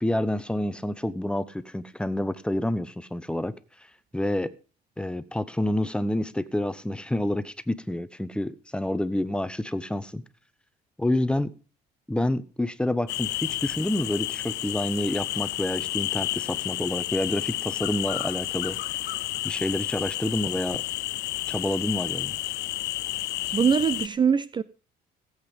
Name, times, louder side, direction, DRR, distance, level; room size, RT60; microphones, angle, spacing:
voice 1, 0.0-3.5 4.1-4.5 5.0-10.2 11.0-11.5 12.1-18.8 19.4-20.8 21.5-22.3, left 1 dB, 5° left, 0.9 m, -28 dB
sound 1, 13.1-24.1, left 17 dB, 80° left, 0.5 m, -31 dB
voice 2, 23.5-24.6, right 6 dB, 25° right, 0.5 m, -22 dB
17.0 x 8.2 x 5.3 m
cardioid pair, 110°, 17 cm